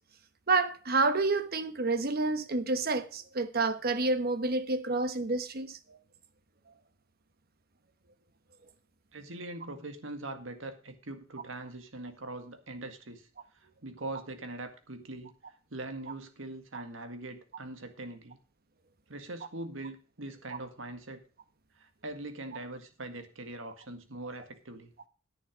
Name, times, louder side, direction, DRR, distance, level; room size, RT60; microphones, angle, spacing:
voice 1, 0.5-5.8, right 3 dB, 50° right, 1.1 m, -29 dB
voice 2, 9.1-13.3 13.5-18.4 19.1-21.2 21.8-24.9, right 2 dB, 75° right, 1.9 m, -42 dB
10.5 x 9.2 x 5.1 m
head